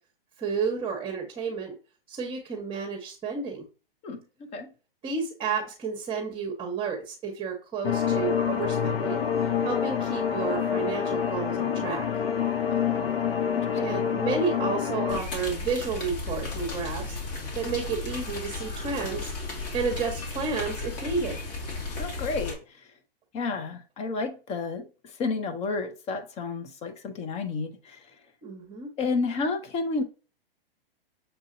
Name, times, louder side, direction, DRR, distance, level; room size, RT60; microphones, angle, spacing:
voice 1, 0.4-1.7 2.1-3.6 5.0-12.0 13.8-17.2 17.5-19.3 19.7-21.4 28.4-28.9, right 5 dB, 20° right, 1.2 m, -31 dB
voice 2, 4.0-4.7 12.7-13.2 13.5-14.0 22.0-22.6 23.3-24.9 25.2-28.0 29.0-30.0, left 4 dB, 20° left, 0.7 m, -31 dB
sound 1, 7.8-15.2, left 7 dB, 75° left, 0.9 m, -27 dB
sound 2, 15.1-22.5, left 3 dB, 45° left, 2.0 m, -34 dB
6.7 x 2.7 x 2.7 m
hypercardioid pair, 125°, 29 cm